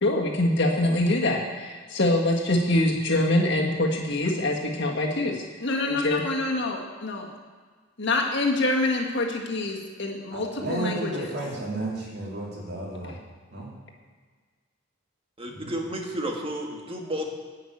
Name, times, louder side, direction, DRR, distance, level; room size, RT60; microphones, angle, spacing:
voice 1, 0.0-7.3 8.0-11.3 13.0-13.1, left 1 dB, 60° left, 0 dB, 1.8 m, -25 dB
voice 2, 10.3-13.2 13.5-13.7 15.5-15.8, right 2 dB, 55° right, -3 dB, 3.2 m, -33 dB
voice 3, 15.4-17.3, equal, 30° right, 1 dB, 1.6 m, -32 dB
11.0 x 5.9 x 8.6 m, 1.5 s
head